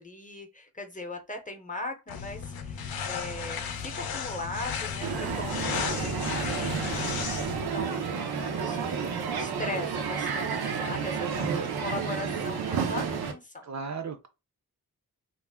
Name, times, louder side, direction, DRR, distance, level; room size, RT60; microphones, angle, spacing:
voice 1, 0.0-13.7, left 2 dB, 20° left, 0.6 m, -39 dB
sound 1, 2.1-7.7, left 6 dB, 75° left, 0.6 m, -34 dB
Crowd, 5.0-13.3, right 6 dB, 90° right, 0.6 m, -31 dB
voice 2, 11.2-11.7 13.6-14.3, right 6 dB, 50° right, 0.5 m, -36 dB
2.4 x 2.1 x 3.4 m
cardioid pair, 75°, 37 cm